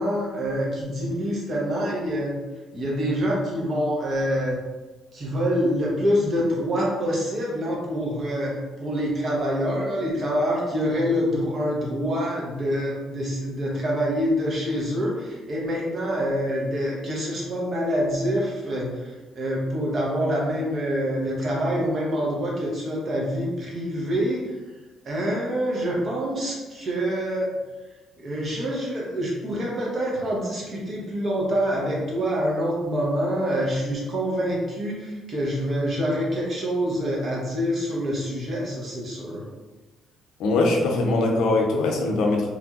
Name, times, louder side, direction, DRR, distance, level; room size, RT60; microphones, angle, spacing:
voice 1, 0.0-2.4 2.7-4.6 5.1-24.4 25.0-27.6 28.2-39.4, equal, 50° right, -4 dB, 1.1 m, -26 dB
voice 2, 40.4-42.5, left 2 dB, 80° left, 1 dB, 0.5 m, -21 dB
3.3 x 2.6 x 2.4 m, 1.2 s
cardioid pair, 80°, 0 cm